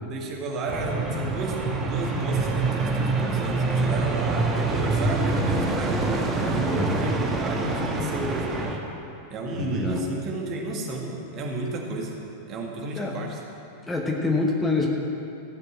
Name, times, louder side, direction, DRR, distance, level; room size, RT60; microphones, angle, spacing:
voice 1, 0.0-8.5 9.3-12.2 12.5-13.4, right 2 dB, 35° right, 0 dB, 2.0 m, -32 dB
sound 1, 0.7-8.8, right 3 dB, 15° right, 1.4 m, -26 dB
voice 2, 6.7-7.2 9.5-10.0 12.9-13.2 13.8-14.9, left 3 dB, 10° left, 0 dB, 1.2 m, -26 dB
15.0 x 6.6 x 7.4 m, 2.8 s
figure-of-eight pair, 90°, 0 cm